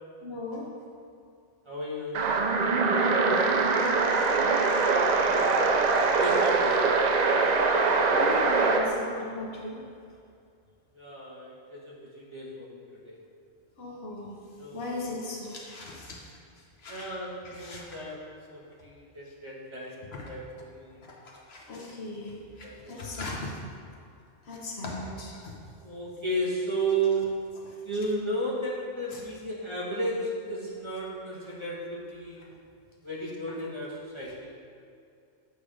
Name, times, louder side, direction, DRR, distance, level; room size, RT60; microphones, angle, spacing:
voice 1, 0.2-0.7 2.8-3.9 8.1-9.8 13.8-14.4 14.7-16.2 16.8-17.1 17.6-17.8 21.5-23.6 24.4-25.5 29.1-29.2, left 2 dB, 65° left, -2 dB, 1.1 m, -37 dB
voice 2, 1.6-2.3 5.3-7.0 10.9-13.1 14.6-15.3 16.9-21.0 21.7-22.1 22.6-23.1 24.9-25.0 25.8-27.5 27.8-32.5 33.0-34.5, right 2 dB, 25° right, -6 dB, 1.1 m, -34 dB
sound 1, 2.1-8.9, right 4 dB, 55° right, 0.5 m, -23 dB
8.0 x 3.2 x 5.0 m, 2.4 s
omnidirectional pair, 1.2 m